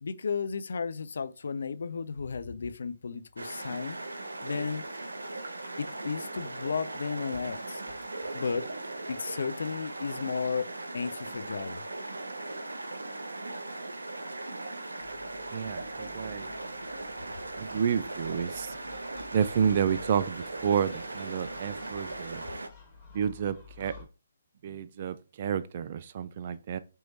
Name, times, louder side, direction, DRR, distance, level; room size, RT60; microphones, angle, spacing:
voice 1, 0.0-4.9 5.2-5.3 5.8-7.8 8.3-8.7 9.1-11.8, left 5 dB, 65° left, 0.4 m, -34 dB
sound 1, 3.4-22.7, right 2 dB, 85° right, 0.6 m, -39 dB
Gull seagull, 15.0-24.0, left 5 dB, 10° left, 1.9 m, -53 dB
voice 2, 15.5-16.5 17.6-18.8 19.3-22.4 23.1-24.0 24.6-26.8, right 8 dB, 45° right, 0.3 m, -30 dB
4.4 x 3.1 x 2.7 m
figure-of-eight pair, 140°, 0 cm